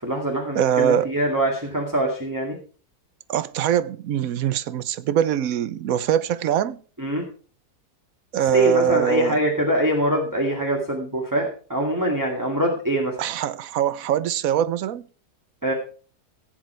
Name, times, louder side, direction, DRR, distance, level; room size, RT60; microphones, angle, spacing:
voice 1, 0.0-2.6 7.0-7.2 8.5-13.2 15.6-15.7, right 1 dB, 10° right, 2.1 m, -23 dB
voice 2, 0.5-1.1 3.3-6.8 8.3-9.4 13.2-15.0, right 9 dB, 70° right, 1.1 m, -23 dB
16.5 x 7.7 x 4.5 m
omnidirectional pair, 1.6 m